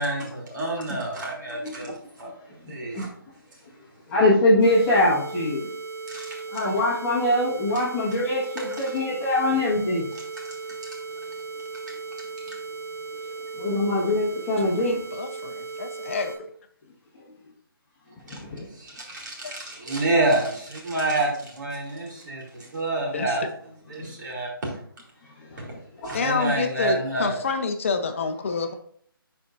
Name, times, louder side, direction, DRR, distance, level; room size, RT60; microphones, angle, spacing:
voice 1, 0.0-1.9 2.2-3.1 6.1-6.3 8.6-8.7 12.5-12.6 18.3-18.4 18.8-23.4 23.9-24.7 25.6-25.7 26.0-27.4, right 2 dB, 55° right, -2 dB, 3.0 m, -28 dB
voice 2, 1.6-2.0 2.7-3.0 4.1-5.6 6.5-10.1 13.5-15.0 18.3-18.7 23.9-24.1 25.4-25.6 26.0-26.1, left 1 dB, 10° left, -8 dB, 1.3 m, -23 dB
sound 1, 4.6-16.4, right 4 dB, 30° right, 3.2 m, -37 dB
voice 3, 14.8-16.4 19.4-19.6 23.1-23.4 26.1-28.7, left 5 dB, 35° left, 7 dB, 0.7 m, -28 dB
11.0 x 4.4 x 2.6 m, 0.63 s
hypercardioid pair, 165°, 12 cm